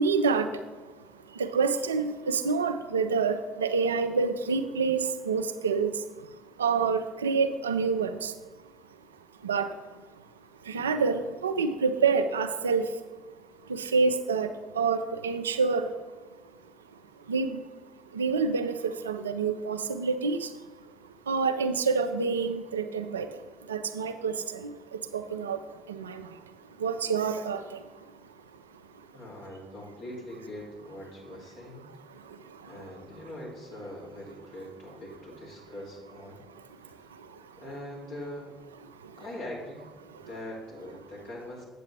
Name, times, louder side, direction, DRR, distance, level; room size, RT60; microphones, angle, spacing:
voice 1, 0.0-8.4 8.9-9.0 9.4-10.2 10.6-13.1 13.6-15.9 17.2-17.7 18.0-20.6 21.0-29.1 32.1-32.8 36.5-37.6 38.9-39.2 40.1-40.3, right 5 dB, 85° right, 10 dB, 0.4 m, -29 dB
voice 2, 29.1-31.9 32.6-36.4 36.8-37.1 37.6-38.6 39.2-39.9 40.1-41.6, left 1 dB, 65° left, -5 dB, 2.7 m, -42 dB
8.2 x 7.5 x 3.3 m, 1.3 s
figure-of-eight pair, 50°, 0 cm